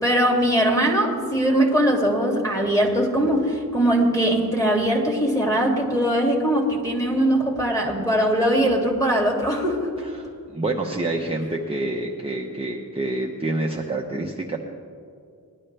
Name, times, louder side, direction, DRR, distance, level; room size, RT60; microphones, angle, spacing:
voice 1, 0.0-9.9, right 1 dB, 10° left, -1 dB, 2.5 m, -21 dB
voice 2, 10.0-14.6, right 2 dB, 15° right, 0 dB, 0.9 m, -27 dB
20.0 x 11.5 x 3.3 m, 2.4 s
wide cardioid pair, 100°, 36 cm